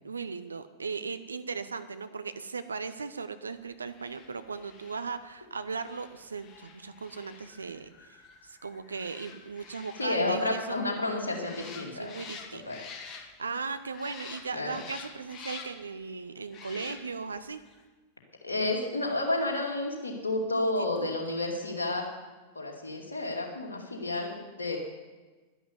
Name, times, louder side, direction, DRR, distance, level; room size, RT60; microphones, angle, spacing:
voice 1, 0.0-8.2 8.4-10.8 11.9-17.6 20.5-21.1, right 5 dB, 75° right, 11 dB, 0.7 m, -38 dB
sound 1, 3.9-13.6 13.9-15.9 16.5-17.3 17.7-17.8, left 5 dB, 30° left, 1.8 m, -48 dB
voice 2, 10.0-12.1 12.7-12.8 14.5-14.8 18.4-22.1 22.5-24.8, left 2 dB, 75° left, 1 dB, 2.6 m, -31 dB
11.0 x 11.0 x 8.2 m, 1.3 s
figure-of-eight pair, 90°, 0 cm